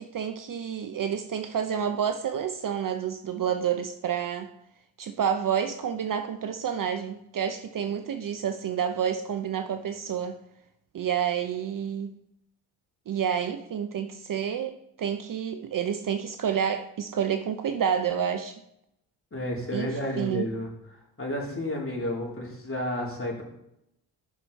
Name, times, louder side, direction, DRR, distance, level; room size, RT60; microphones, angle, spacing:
voice 1, 0.0-4.5 5.0-10.4 10.9-12.1 13.1-18.6 19.7-20.5, right 8 dB, 40° right, 9 dB, 0.7 m, -29 dB
voice 2, 19.3-20.7 21.2-23.4, left 1 dB, 25° left, -2 dB, 3.4 m, -31 dB
10.0 x 6.1 x 4.1 m, 0.80 s
hypercardioid pair, 45°, 48 cm